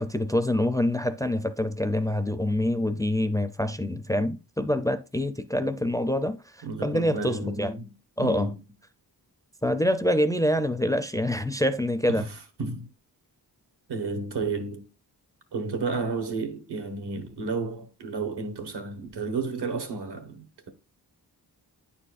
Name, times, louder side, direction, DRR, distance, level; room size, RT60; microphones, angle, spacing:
voice 1, 0.0-7.7 8.2-8.5 9.6-12.3, left 1 dB, 10° left, 0.4 m, -26 dB
voice 2, 6.6-7.9 8.2-8.6 12.1-12.3 12.6-12.9 13.9-14.9 15.5-20.7, right 4 dB, 80° right, 1.3 m, -32 dB
9.6 x 4.3 x 2.4 m
wide cardioid pair, 100°, 40 cm